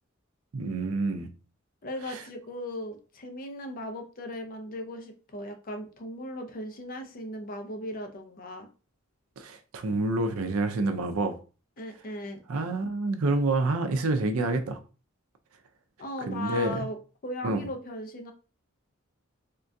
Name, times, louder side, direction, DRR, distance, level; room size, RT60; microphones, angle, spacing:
voice 1, 0.5-1.3 2.1-2.2 9.4-11.3 12.5-14.8 16.2-16.9 17.4-17.7, right 2 dB, 85° right, 0.5 m, -28 dB
voice 2, 1.8-8.7 11.8-12.4 16.0-17.0 17.2-18.3, left 1 dB, 40° left, 0.5 m, -37 dB
3.6 x 2.3 x 2.6 m
head